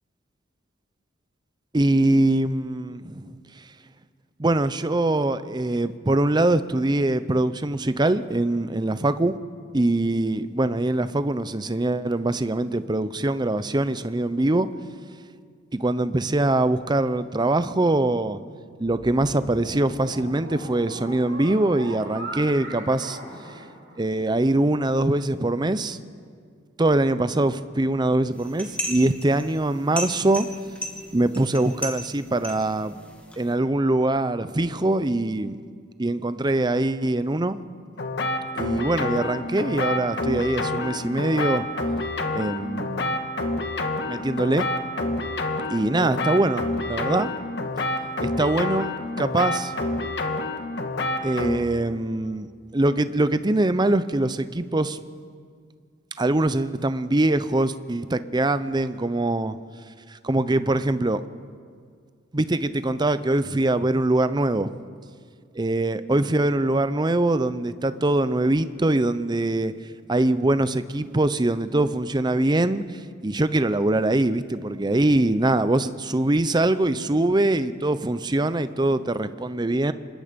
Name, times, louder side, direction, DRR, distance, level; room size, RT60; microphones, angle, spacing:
voice 1, 1.7-3.3 4.4-9.4 9.7-14.7 15.7-18.4 18.8-23.2 24.0-26.0 26.8-30.5 31.1-33.0 33.4-35.6 36.0-37.6 38.6-41.6 42.3-43.2 44.1-44.7 45.7-47.3 48.2-49.7 51.2-52.5 52.7-55.0 56.2-59.6 60.1-61.2 62.3-64.7 65.5-69.7 70.1-72.8 73.2-79.9, right 2 dB, 20° right, 13 dB, 0.6 m, -23 dB
sound 1, 18.8-24.3, right 1 dB, 70° right, 6.6 m, -39 dB
sound 2, 28.3-33.5, equal, 5° left, 2.4 m, -36 dB
sound 3, 38.0-51.6, left 2 dB, 60° left, 1.7 m, -28 dB
26.0 x 21.0 x 5.2 m, 2.1 s
head